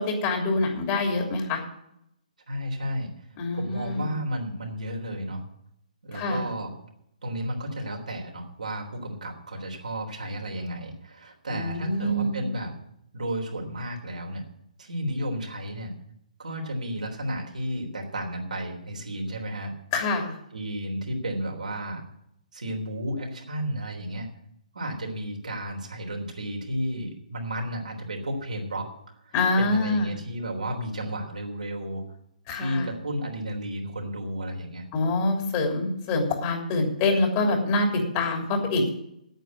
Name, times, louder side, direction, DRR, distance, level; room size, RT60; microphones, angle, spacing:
voice 1, 0.0-1.6 3.4-4.1 6.1-6.4 11.5-12.4 19.9-20.3 29.3-30.1 32.5-32.9 34.9-38.9, left 2 dB, 30° left, 2 dB, 3.2 m, -25 dB
voice 2, 2.5-3.1 3.5-5.4 6.0-6.7 7.2-12.7 13.1-14.4 14.8-15.9 16.4-19.7 20.5-22.0 22.5-24.3 24.7-28.9 29.3-32.0 32.5-34.9, equal, 75° right, 1 dB, 3.5 m, -32 dB
9.2 x 8.9 x 9.3 m, 0.76 s
figure-of-eight pair, 135°, 4 cm